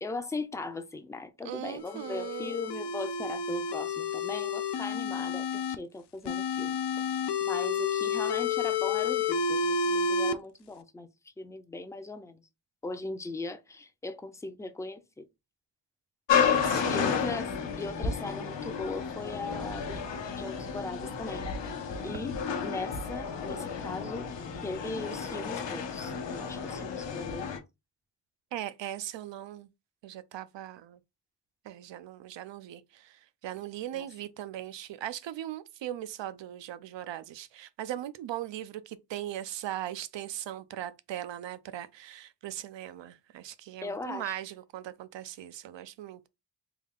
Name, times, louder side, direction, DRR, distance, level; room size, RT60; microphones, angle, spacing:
voice 1, 0.0-11.1 11.4-12.4 12.8-15.2 16.9-17.5 17.8-20.0 20.4-22.4 22.6-24.3 24.6-27.6 33.9-34.1 43.8-44.3, left 2 dB, 10° left, 0.4 m, -39 dB
voice 2, 1.4-2.6 16.4-17.2 28.5-29.7 30.0-31.0 31.6-46.2, right 12 dB, 85° right, 0.5 m, -39 dB
sound 1, 1.8-5.8 6.3-10.3, left 4 dB, 70° left, 0.5 m, -30 dB
sound 2, 16.3-27.6, left 6 dB, 85° left, 0.9 m, -32 dB
3.5 x 2.3 x 3.6 m
wide cardioid pair, 115°, 43 cm